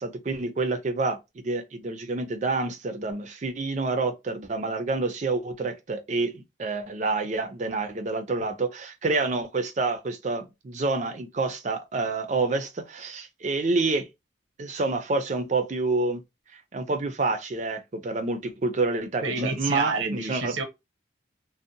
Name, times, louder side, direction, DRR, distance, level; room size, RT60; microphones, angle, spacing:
voice 1, 0.0-14.1 14.6-16.2 16.5-20.5, right 3 dB, 35° right, 0.4 m, -28 dB
voice 2, 19.2-20.6, right 3 dB, 85° right, 0.7 m, -28 dB
2.6 x 2.0 x 2.5 m
head